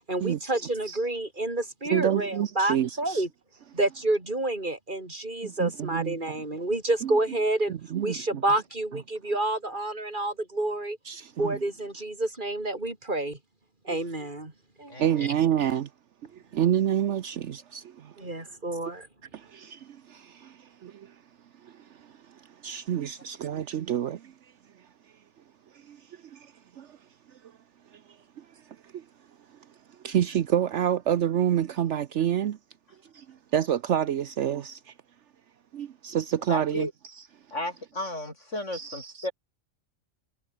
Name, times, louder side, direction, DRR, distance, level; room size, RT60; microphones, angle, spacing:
voice 1, 0.1-3.3 3.7-7.7 8.0-11.0 11.4-13.4 13.9-14.5 14.8-15.3 18.2-19.1, right 2 dB, 40° right, 3.7 m, -29 dB
voice 2, 1.9-3.2 5.4-6.2 7.0-7.2 7.7-8.4 11.1-11.6 13.9-14.0 15.0-15.9 16.3-18.3 19.3-21.1 21.6-24.3 25.8-26.0 26.2-27.0 28.4-28.5 28.8-29.0 30.0-32.6 33.1-34.9 35.7-36.9 38.7-39.3, right 10 dB, 70° right, 1.1 m, -28 dB
voice 3, 36.5-36.9 37.5-39.3, left 1 dB, 70° left, 7.4 m, -33 dB
omnidirectional pair, 1.3 m